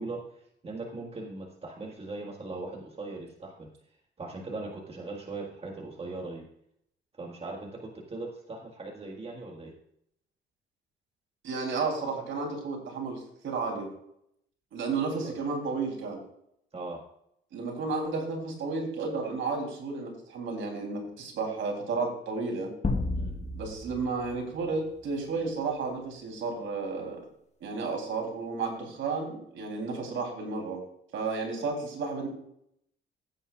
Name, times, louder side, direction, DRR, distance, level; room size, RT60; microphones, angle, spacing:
voice 1, 0.0-3.7 4.2-6.4 7.1-9.7 14.9-15.4 16.7-17.0 23.1-23.3, right 3 dB, 30° right, 1 dB, 1.8 m, -39 dB
voice 2, 11.4-13.9 14.7-16.2 17.5-22.7 23.5-27.2 27.6-30.8 31.1-32.3, right 4 dB, 75° right, 1 dB, 3.5 m, -32 dB
sound 1, 22.8-25.4, left 3 dB, 35° left, 1.4 m, -33 dB
15.0 x 8.9 x 2.5 m, 0.73 s
cardioid pair, 90°, 20 cm